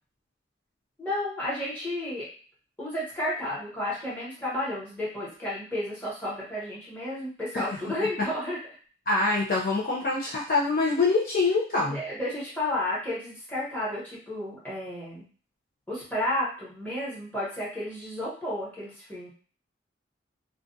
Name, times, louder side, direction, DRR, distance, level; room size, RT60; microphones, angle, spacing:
voice 1, 1.0-2.3 2.8-8.6 11.8-15.2 15.9-19.3, left 1 dB, 10° left, -8 dB, 1.0 m, -32 dB
voice 2, 7.5-7.9 9.1-12.0, left 3 dB, 45° left, -4 dB, 0.5 m, -25 dB
2.4 x 2.2 x 2.6 m, 0.41 s
head